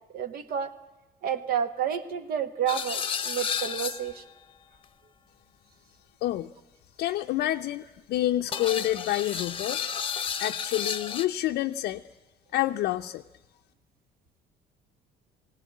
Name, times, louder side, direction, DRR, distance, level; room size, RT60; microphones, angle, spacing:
voice 1, 0.1-0.7 1.2-4.2, right 8 dB, 60° right, 10 dB, 1.6 m, -30 dB
sound 1, 2.7-4.3 8.5-11.3, left 7 dB, 30° left, 0.9 m, -32 dB
voice 2, 7.0-9.8 10.4-12.0 12.5-13.2, left 14 dB, 75° left, 4 dB, 0.6 m, -28 dB
18.5 x 17.5 x 8.4 m, 1.1 s
cardioid pair, 110°, 17 cm